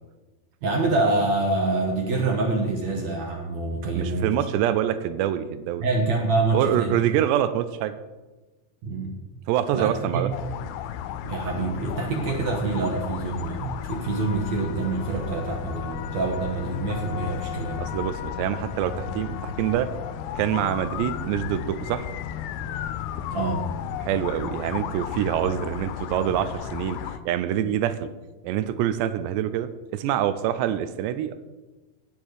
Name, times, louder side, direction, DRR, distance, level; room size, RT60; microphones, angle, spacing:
voice 1, 0.6-4.3 5.8-7.0 8.8-9.1 9.7-10.2 11.2-17.8 23.3-23.7, right 3 dB, 60° right, 0 dB, 2.0 m, -26 dB
voice 2, 3.9-5.8 6.5-7.9 9.5-10.3 17.8-19.9 20.4-22.1 24.0-27.0 27.3-28.1 28.4-31.4, right 11 dB, 85° right, 12 dB, 2.9 m, -25 dB
sound 1, 10.3-27.2, left 9 dB, 80° left, 2.4 m, -34 dB
17.5 x 7.5 x 4.8 m, 1.2 s
omnidirectional pair, 4.9 m